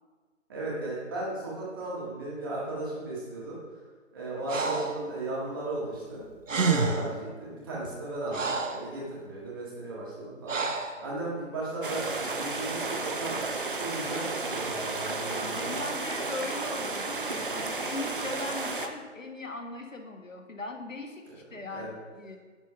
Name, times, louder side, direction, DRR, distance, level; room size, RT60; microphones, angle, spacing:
voice 1, 0.5-3.6 4.1-13.3 13.8-15.7 21.3-21.9, right 2 dB, 15° right, -6 dB, 1.8 m, -36 dB
Breathing, 4.5-5.0 6.2-6.3 6.5-7.2 7.8-8.9 10.5-11.0, right 4 dB, 75° right, 1.0 m, -28 dB
sound 1, 11.8-18.9, right 3 dB, 45° right, 0.6 m, -33 dB
voice 2, 15.3-22.4, left 3 dB, 85° left, 4 dB, 1.5 m, -39 dB
9.8 x 4.2 x 5.5 m, 1.5 s
figure-of-eight pair, 165°, 38 cm